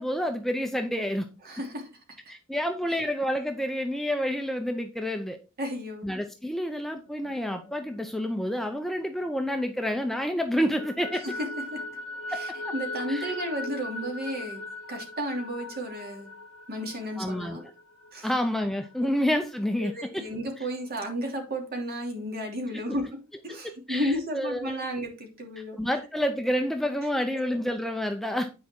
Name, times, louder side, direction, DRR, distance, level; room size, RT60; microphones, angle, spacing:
voice 1, 0.0-1.3 2.3-5.4 6.0-11.2 12.6-12.7 13.1-13.2 17.2-17.7 18.2-20.2 22.7-23.0 23.5-24.8 25.8-28.5, equal, ahead, 5 dB, 0.6 m, -29 dB
voice 2, 1.4-1.9 2.9-3.0 5.6-6.1 11.2-11.8 12.3-14.6 14.9-16.3 16.7-17.6 18.1-18.3 19.8-23.1 23.4-25.8, equal, 45° right, 2 dB, 2.8 m, -33 dB
sound 1, 7.0-9.9 10.2-19.7, left 2 dB, 65° left, 1.7 m, -40 dB
9.5 x 4.9 x 4.4 m, 0.31 s
head